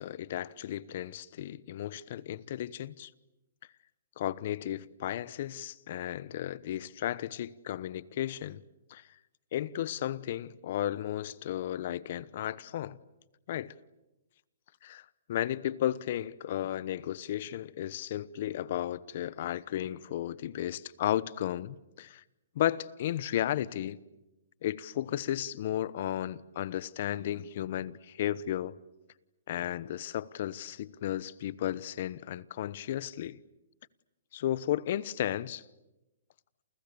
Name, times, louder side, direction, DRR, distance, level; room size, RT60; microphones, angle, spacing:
voice 1, 0.0-3.1 4.2-8.6 8.9-9.0 9.5-13.0 13.5-13.7 14.8-15.0 15.3-22.2 22.5-24.0 24.6-28.7 29.5-33.4 34.3-35.6, left 12 dB, 55° left, 1.0 m, -34 dB
29.0 x 29.0 x 7.0 m
hypercardioid pair, 140°, 0 cm